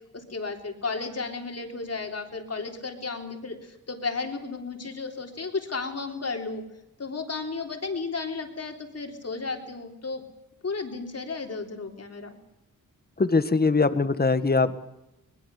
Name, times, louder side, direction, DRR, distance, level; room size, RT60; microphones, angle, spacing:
voice 1, 0.1-6.6 7.0-10.2 10.6-12.4, left 4 dB, 45° left, 3 dB, 3.6 m, -33 dB
voice 2, 13.2-14.8, left 3 dB, 25° left, 11 dB, 1.5 m, -22 dB
21.5 x 21.5 x 7.1 m, 0.89 s
wide cardioid pair, 115°, 34 cm